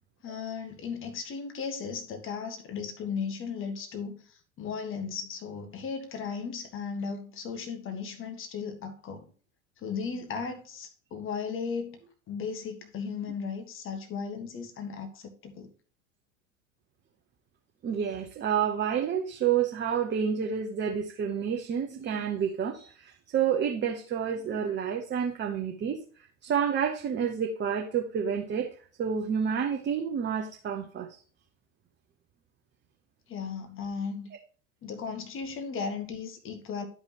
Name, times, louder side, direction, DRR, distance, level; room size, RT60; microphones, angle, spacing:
voice 1, 0.2-4.2 4.6-9.3 9.8-12.0 12.3-15.7 33.3-34.3 34.8-36.8, left 5 dB, 30° left, 1.6 m, -36 dB
voice 2, 17.8-28.7 29.0-31.1, right 7 dB, 25° right, 1.0 m, -29 dB
11.5 x 5.4 x 3.0 m
figure-of-eight pair, 80°, 40 cm